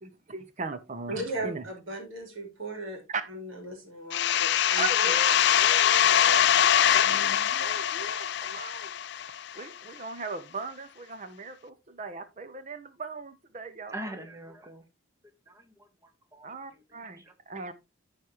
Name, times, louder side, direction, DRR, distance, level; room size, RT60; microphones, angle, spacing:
voice 1, 0.0-1.6 3.1-3.2 4.8-7.3 7.6-8.9 9.6-13.9 16.4-17.2 17.5-17.7, right 4 dB, 35° right, 0.7 m, -38 dB
voice 2, 1.1-3.0 3.3-5.1 7.0-7.6, right 1 dB, 75° right, 3.4 m, -37 dB
sound 1, 4.1-9.6, left 10 dB, 55° left, 0.4 m, -23 dB
voice 3, 13.9-14.8 15.5-17.3, right 1 dB, 15° right, 1.3 m, -43 dB
14.0 x 4.9 x 2.9 m
head